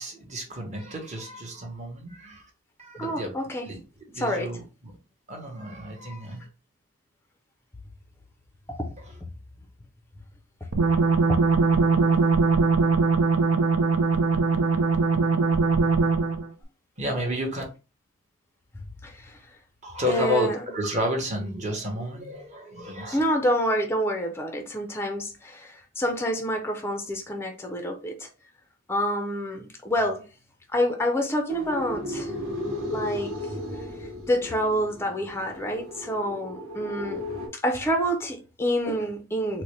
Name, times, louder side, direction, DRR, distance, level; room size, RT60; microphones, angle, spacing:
voice 1, 0.0-2.5 2.8-3.3 3.6-3.8 4.1-4.9 5.3-6.5 9.0-9.1 17.0-17.6 19.8-23.2, left 1 dB, 30° right, 0.9 m, -31 dB
voice 2, 3.0-3.7 4.1-4.5 8.8-8.9 19.0-19.4 20.1-20.6 23.1-28.3 28.9-30.3 30.7-32.3 32.9-33.4 34.3-37.2 37.5-39.6, equal, 10° left, 0.4 m, -27 dB
sound 1, 10.7-16.5, right 4 dB, 80° right, 0.5 m, -21 dB
sound 2, 31.5-37.5, left 1 dB, 60° right, 1.0 m, -35 dB
4.0 x 2.1 x 3.1 m
head